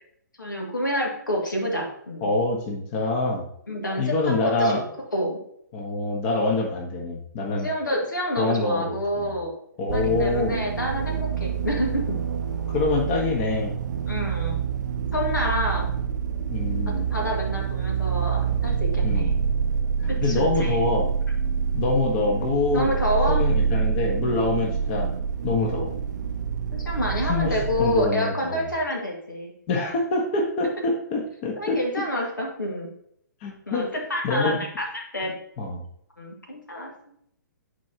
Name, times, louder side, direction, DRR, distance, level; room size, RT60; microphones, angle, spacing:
voice 1, 0.4-2.3 3.7-4.8 5.1-5.4 7.6-9.5 9.9-12.2 14.1-14.6 15.1-15.9 16.9-19.4 20.1-20.8 22.7-23.4 26.7-29.5 31.6-32.9 33.7-35.3 36.2-36.9, equal, 85° left, 0 dB, 2.0 m, -28 dB
voice 2, 2.2-3.5 4.0-4.8 5.7-7.7 8.4-9.4 9.8-10.6 12.7-13.7 16.5-17.1 19.0-19.4 20.2-21.1 21.7-22.9 23.3-25.1 25.4-25.9 27.3-28.6 29.7-31.8 33.4-33.9 34.2-34.7 35.6-35.8, left 3 dB, 35° left, 1 dB, 1.3 m, -25 dB
sound 1, 9.9-28.1, right 6 dB, 70° right, 0.5 m, -26 dB
9.1 x 4.6 x 2.9 m, 0.70 s
hypercardioid pair, 130°, 10 cm